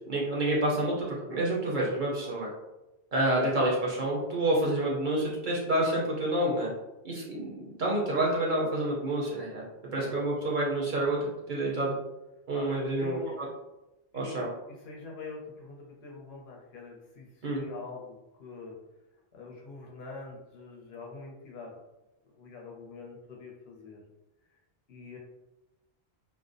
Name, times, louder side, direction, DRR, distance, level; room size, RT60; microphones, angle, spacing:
voice 1, 0.1-2.5 3.1-6.7 7.0-9.6 9.9-11.2 11.5-11.9 12.5-13.5 14.1-14.5 17.4-17.6, right 1 dB, 55° right, -4 dB, 0.6 m, -28 dB
voice 2, 12.5-13.4 14.1-18.8 19.3-21.7 22.2-24.0 24.5-24.6 24.9-25.2, left 3 dB, 70° left, -2 dB, 0.8 m, -45 dB
2.4 x 2.0 x 2.5 m, 0.99 s
omnidirectional pair, 1.1 m